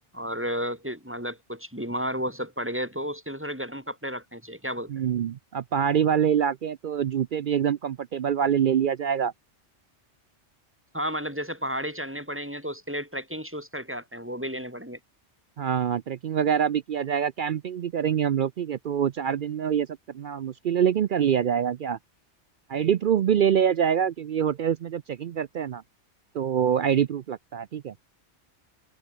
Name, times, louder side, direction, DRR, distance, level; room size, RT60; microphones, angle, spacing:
voice 1, 0.1-4.9 10.9-15.0, equal, 10° right, 3.2 m, -32 dB
voice 2, 4.9-9.3 15.6-19.9 20.1-22.0 22.7-25.8 26.3-27.9, right 8 dB, 55° right, 0.6 m, -25 dB
omnidirectional pair, 1.2 m